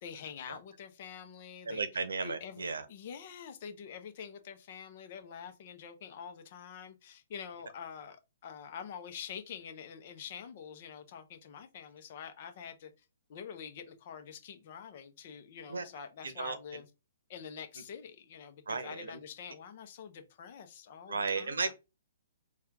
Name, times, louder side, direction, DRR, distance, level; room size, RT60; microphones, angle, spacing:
voice 1, 0.0-8.2 8.4-12.9 13.3-16.9 17.3-21.7, left 7 dB, 50° left, 0.8 m, -46 dB
voice 2, 1.7-2.8 15.7-15.8 16.2-16.8 18.7-19.1 21.1-21.7, right 4 dB, 85° right, 0.8 m, -35 dB
4.3 x 2.5 x 3.4 m
hypercardioid pair, 140°, 0 cm